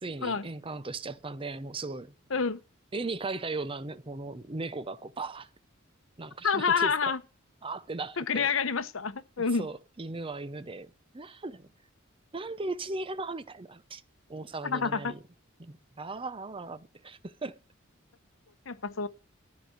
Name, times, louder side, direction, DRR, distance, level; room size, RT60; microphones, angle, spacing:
voice 1, 0.0-2.1 2.9-5.5 6.2-7.1 7.6-8.5 9.4-11.7 12.3-14.0 14.3-15.2 15.6-17.6, right 3 dB, 25° right, 0.7 m, -37 dB
voice 2, 6.4-7.2 8.2-9.7 14.6-15.2 18.7-19.1, left 5 dB, 70° left, 1.0 m, -28 dB
13.0 x 5.1 x 7.8 m
head